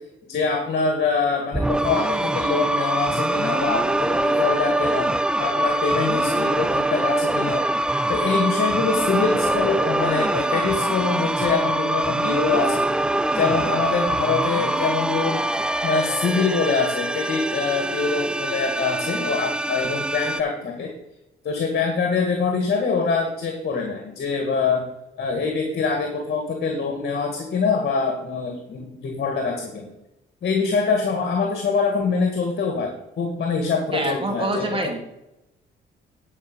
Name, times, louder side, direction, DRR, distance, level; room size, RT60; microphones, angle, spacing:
voice 1, 0.3-5.1 5.4-7.6 8.1-12.9 13.3-15.4 15.8-20.9 21.4-24.8 25.2-29.9 30.4-34.6, left 4 dB, 55° left, 2 dB, 2.0 m, -24 dB
sound 1, 1.5-20.4, right 1 dB, 5° right, 0.4 m, -24 dB
voice 2, 33.9-35.0, right 2 dB, 25° right, 3 dB, 2.1 m, -26 dB
11.0 x 5.4 x 5.5 m, 0.89 s
cardioid pair, 90°, 20 cm